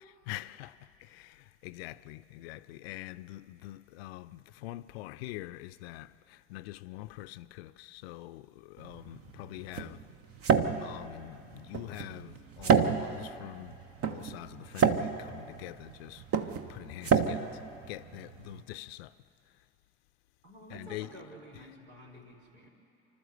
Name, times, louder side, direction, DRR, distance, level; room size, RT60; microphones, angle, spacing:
voice 1, 0.3-10.0 10.6-13.8 14.0-16.2 16.7-19.1 20.7-21.2 21.5-21.6, left 16 dB, 65° left, 0.5 m, -44 dB
sound 1, 8.8-18.6, right 6 dB, 45° right, 1.1 m, -30 dB
voice 2, 12.1-12.4 20.4-22.7, right 1 dB, 75° right, 3.9 m, -50 dB
29.0 x 12.5 x 8.0 m
figure-of-eight pair, 60°, 33 cm